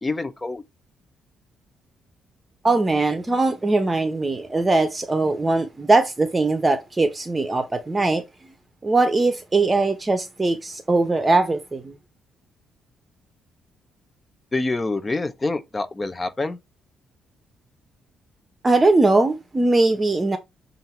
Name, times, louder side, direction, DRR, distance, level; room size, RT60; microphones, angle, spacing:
voice 1, 0.0-0.6 14.5-16.6, left 2 dB, 25° left, 1.0 m, -26 dB
voice 2, 2.6-8.2 8.8-11.9 18.6-20.4, right 2 dB, 20° right, 0.9 m, -20 dB
7.6 x 2.8 x 4.4 m
cardioid pair, 90°, 0 cm